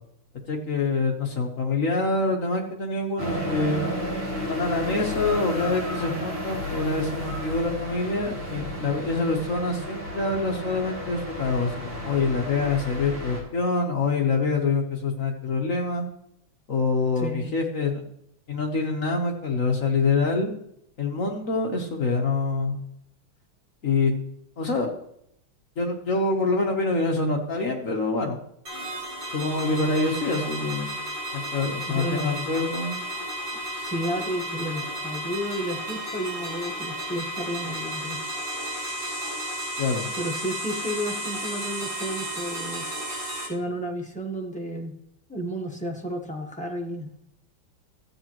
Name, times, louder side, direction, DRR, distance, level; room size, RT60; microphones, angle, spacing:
voice 1, 0.5-3.8 4.5-16.1 16.7-18.0 18.5-20.5 21.0-22.8 23.8-24.1 24.6-24.9 25.8-28.4 29.3-31.0 31.3-33.0 39.8-40.1, left 3 dB, 50° left, 1 dB, 1.1 m, -26 dB
sound 1, 3.2-13.4, left 1 dB, 25° right, 2.5 m, -32 dB
voice 2, 17.2-17.5 31.9-32.5 33.6-38.2 40.2-42.8 43.5-44.9 45.3-47.1, equal, 10° left, -1 dB, 0.3 m, -32 dB
sound 2, 28.7-43.5, right 1 dB, 50° right, 3.8 m, -33 dB
13.5 x 8.0 x 3.0 m, 0.75 s
omnidirectional pair, 2.4 m